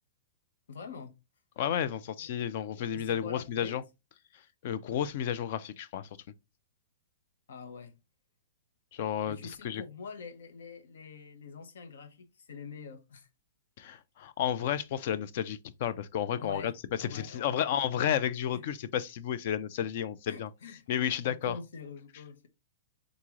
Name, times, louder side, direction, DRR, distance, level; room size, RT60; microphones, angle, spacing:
voice 1, 0.7-1.2 2.2-2.3 2.8-3.8 7.5-8.0 9.3-13.3 16.4-16.7 17.0-17.7 18.5-18.6 20.3-20.8 21.2-22.5, left 5 dB, 80° left, 0.9 m, -45 dB
voice 2, 1.6-3.8 4.6-6.1 8.9-9.8 13.8-16.7 17.0-20.5 20.9-21.6, left 9 dB, 45° left, 0.4 m, -32 dB
3.8 x 3.1 x 3.6 m
hypercardioid pair, 165°, 0 cm